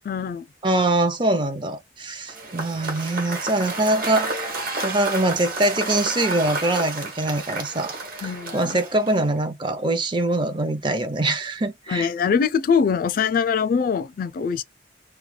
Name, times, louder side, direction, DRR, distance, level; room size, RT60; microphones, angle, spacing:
voice 1, 0.1-0.5 8.2-8.8 11.9-14.6, left 6 dB, 50° left, 0.3 m, -23 dB
voice 2, 0.6-4.3 4.8-7.9 8.2-12.1, right 2 dB, 25° right, 0.5 m, -23 dB
Cheering / Applause / Crowd, 2.3-9.4, right 2 dB, 55° right, 1.1 m, -31 dB
2.3 x 2.2 x 3.1 m
head